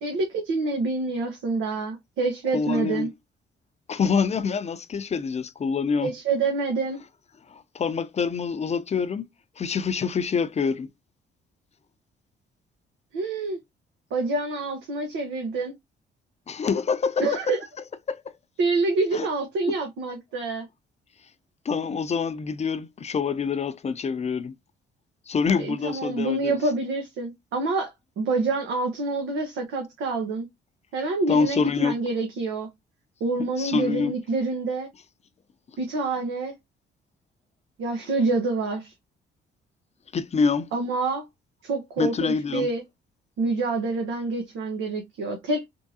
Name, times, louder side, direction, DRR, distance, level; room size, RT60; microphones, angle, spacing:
voice 1, 0.0-3.1 6.0-7.0 13.1-13.6 14.1-15.8 17.2-17.6 18.6-20.7 25.6-30.5 30.9-32.7 33.2-34.9 35.8-36.5 37.8-38.9 40.7-41.3 41.6-42.8 43.4-45.7, right 3 dB, 90° right, 1.0 m, -27 dB
voice 2, 2.5-3.1 3.9-6.1 7.5-9.3 9.6-10.9 16.5-17.5 18.1-18.3 19.1-19.3 21.6-24.5 25.3-26.5 31.3-32.0 33.6-34.1 40.1-40.7 42.0-42.7, left 5 dB, 35° left, 0.5 m, -26 dB
3.6 x 3.1 x 2.7 m
cardioid pair, 90°, 20 cm